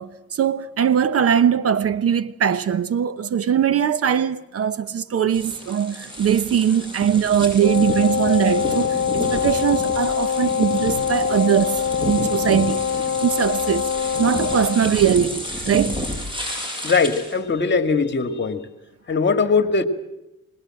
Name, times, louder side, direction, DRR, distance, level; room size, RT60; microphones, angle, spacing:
voice 1, 0.0-12.9 13.2-13.9 14.2-16.0, right 8 dB, 50° right, 0.9 m, -21 dB
sound 1, 5.3-17.4, equal, 15° right, 7.9 m, -31 dB
Wind instrument woodwind instrument, 7.6-14.9, left 8 dB, 60° left, 1.0 m, -24 dB
voice 2, 16.8-18.7 19.1-19.8, left 4 dB, 35° left, 2.0 m, -20 dB
25.0 x 20.5 x 7.7 m
cardioid pair, 90°, 30 cm